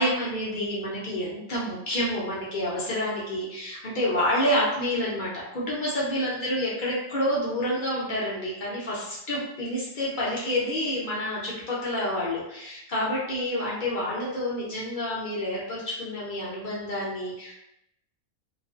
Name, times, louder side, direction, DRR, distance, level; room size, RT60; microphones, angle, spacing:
voice 1, 0.0-17.5, equal, 60° left, -6 dB, 0.5 m, -28 dB
2.4 x 2.3 x 2.3 m, 0.84 s
omnidirectional pair, 1.5 m